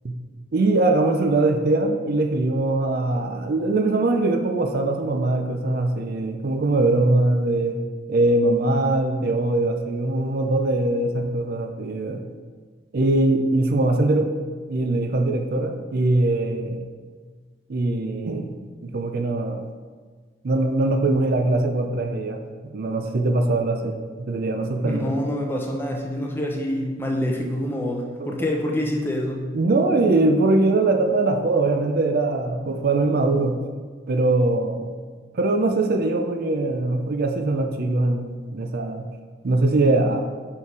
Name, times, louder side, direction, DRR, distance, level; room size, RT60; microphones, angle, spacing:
voice 1, 0.5-7.8 8.1-12.2 12.9-14.3 14.7-16.8 17.7-19.7 20.4-22.4 22.7-25.2 28.2-28.4 29.5-33.6 34.1-34.9 35.3-39.1 39.4-40.3, right 2 dB, 50° right, 5 dB, 0.4 m, -22 dB
voice 2, 24.8-29.4, left 1 dB, 10° left, 0 dB, 0.6 m, -26 dB
5.3 x 4.5 x 4.7 m, 1.5 s
head